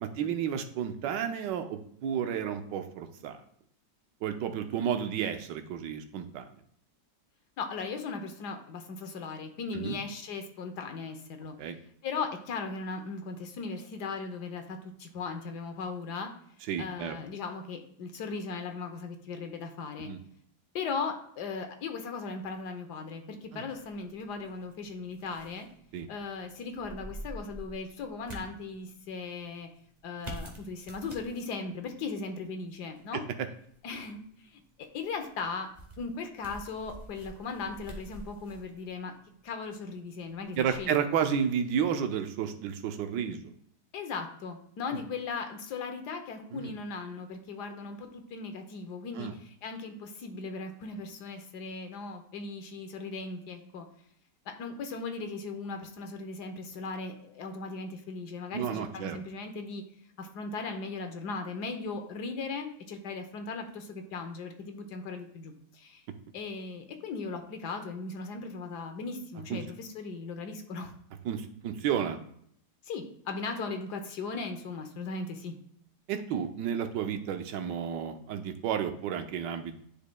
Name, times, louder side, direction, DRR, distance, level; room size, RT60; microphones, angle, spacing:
voice 1, 0.0-3.4 4.2-6.5 9.7-10.0 11.6-11.8 16.7-17.2 20.0-20.2 23.5-23.6 25.9-26.1 33.1-33.3 40.6-43.5 44.9-45.0 46.5-46.7 49.2-49.3 58.5-59.2 69.5-69.6 71.2-72.2 76.1-79.8, right 8 dB, 90° right, 7 dB, 1.3 m, -32 dB
voice 2, 7.6-11.5 12.0-16.3 16.8-20.1 20.7-25.7 26.1-29.7 30.0-33.2 33.8-35.7 36.0-39.1 39.4-41.0 43.9-53.8 54.6-59.8 60.2-66.0 66.3-70.9 72.8-75.6, left 4 dB, 70° left, 6 dB, 1.4 m, -38 dB
sound 1, 23.7-41.8, right 1 dB, 30° right, 1.1 m, -49 dB
10.0 x 5.1 x 2.2 m, 0.67 s
omnidirectional pair, 1.9 m